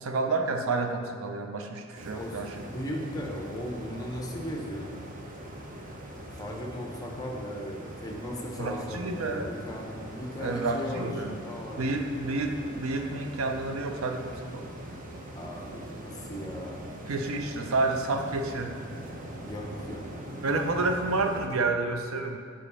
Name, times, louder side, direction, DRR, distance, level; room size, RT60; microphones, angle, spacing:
voice 1, 0.0-2.6 8.6-9.5 10.4-11.4 11.8-14.7 17.1-18.8 20.4-22.4, right 3 dB, 75° right, 6 dB, 0.6 m, -30 dB
sound 1, 1.9-21.5, right 1 dB, 40° right, 0.8 m, -42 dB
voice 2, 2.7-5.0 6.3-11.9 15.4-16.9 19.4-20.0, equal, 20° left, 0 dB, 0.8 m, -37 dB
5.7 x 5.0 x 5.5 m, 2.3 s
head